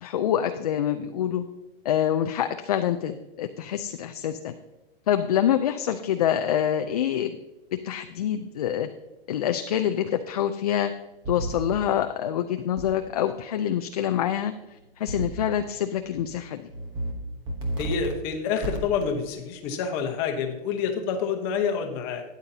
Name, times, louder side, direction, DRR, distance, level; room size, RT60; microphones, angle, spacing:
voice 1, 0.0-1.4 1.8-4.5 5.1-7.4 7.8-8.9 9.3-10.9 11.3-14.5 15.0-16.7, left 10 dB, 40° left, 7 dB, 0.4 m, -26 dB
sound 1, 11.2-11.7 12.8-12.9 15.1-15.5 16.0-16.2 16.7-17.1 17.5-18.1 18.6-19.1, right 1 dB, 15° right, 0.9 m, -31 dB
voice 2, 17.8-22.2, left 6 dB, 25° left, 4 dB, 1.0 m, -28 dB
13.0 x 9.5 x 2.8 m, 1.0 s
hypercardioid pair, 170°, 30 cm